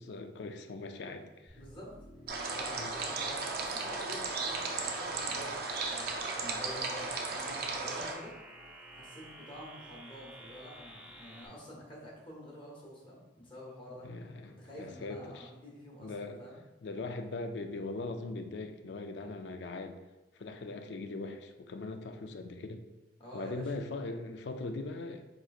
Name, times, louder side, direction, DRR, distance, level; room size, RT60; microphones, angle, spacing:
voice 1, 0.0-1.6 2.8-2.9 14.0-15.5 16.0-16.4 16.8-20.0 20.3-22.8 23.3-25.2, left 3 dB, 70° left, 7 dB, 0.4 m, -40 dB
voice 2, 1.5-2.0 2.5-8.4 8.9-14.1 14.4-16.6 23.2-23.7, equal, 30° left, -3 dB, 1.0 m, -48 dB
sound 1, 1.5-11.5, right 1 dB, 10° right, 0.4 m, -51 dB
sound 2, 2.3-8.1, right 3 dB, 55° right, 0.5 m, -35 dB
4.9 x 3.0 x 2.4 m, 1.1 s
head